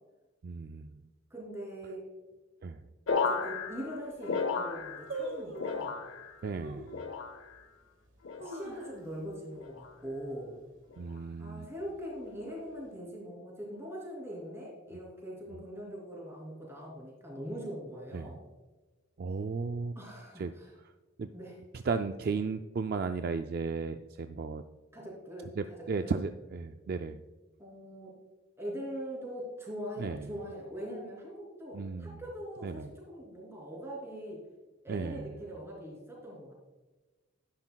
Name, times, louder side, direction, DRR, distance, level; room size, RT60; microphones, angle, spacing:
voice 1, 0.4-0.9 2.6-2.8 6.4-6.9 11.0-11.7 18.1-18.4 19.2-20.0 20.4-20.5 21.2-21.3 21.7-24.6 25.6-27.2 30.0-30.3 31.7-32.2 32.6-32.9 34.9-35.3, right 4 dB, 45° right, 8 dB, 0.3 m, -35 dB
voice 2, 1.3-2.0 3.1-5.9 8.4-10.6 11.4-18.4 19.9-20.7 21.3-21.6 24.9-25.8 26.0-26.1 27.6-28.1 28.6-34.4 34.8-36.5, equal, 10° right, -3 dB, 2.9 m, -42 dB
sound 1, 3.1-5.3 5.6-6.4 6.9-7.6 8.2-8.7 9.6-10.0 10.9-11.2, left 5 dB, 65° left, 0.7 m, -34 dB
sound 2, 3.1-3.2 3.8-3.9 4.1-4.5 5.1-5.8 6.6-7.0 7.5-7.6 8.2-9.3 9.6-9.7 10.0-10.4 10.8-11.1 11.8-12.5 12.8-12.9, right 2 dB, 65° right, 1.6 m, -42 dB
11.5 x 9.6 x 2.3 m, 1.2 s
head